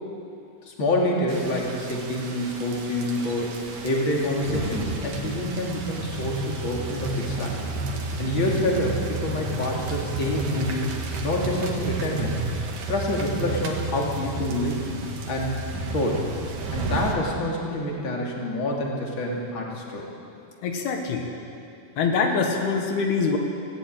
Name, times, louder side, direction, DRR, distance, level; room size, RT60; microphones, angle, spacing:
voice 1, 0.7-3.5 3.8-7.6 8.2-10.9 11.2-12.4 12.9-14.9 15.3-15.6 15.9-16.3 16.7-20.0, left 1 dB, 35° left, -2 dB, 3.3 m, -27 dB
sound 1, 1.3-17.1, right 2 dB, 65° right, 3.4 m, -31 dB
voice 2, 20.6-21.3 22.0-23.4, left 5 dB, 80° left, 2 dB, 3.5 m, -24 dB
18.5 x 16.0 x 8.9 m, 2.5 s
omnidirectional pair, 4.5 m